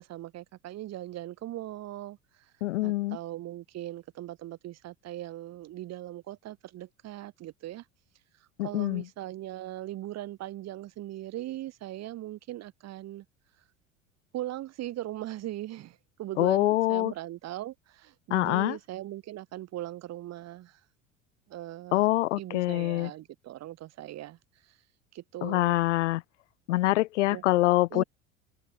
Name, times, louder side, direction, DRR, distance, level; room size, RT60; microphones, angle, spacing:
voice 1, 0.0-2.2 2.8-7.8 8.6-13.3 14.3-20.8 21.5-22.1 22.4-24.4 24.6-24.8 25.1-25.8 27.3-28.0, right 14 dB, 40° right, 2.2 m, -39 dB
voice 2, 2.6-3.2 8.6-9.0 16.4-17.1 18.3-18.8 21.9-23.1 25.4-26.2 26.7-28.0, left 18 dB, 65° left, 0.7 m, -25 dB
figure-of-eight pair, 70°, 40 cm